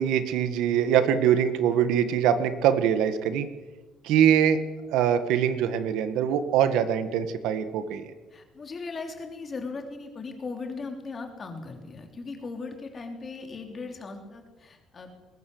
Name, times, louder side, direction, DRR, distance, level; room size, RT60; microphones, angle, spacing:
voice 1, 0.0-3.5 4.0-4.6 4.9-8.1, right 9 dB, 75° right, 10 dB, 1.7 m, -23 dB
voice 2, 8.3-15.1, left 4 dB, 25° left, 4 dB, 3.2 m, -38 dB
21.5 x 19.5 x 7.9 m, 1.2 s
cardioid pair, 175°, 0 cm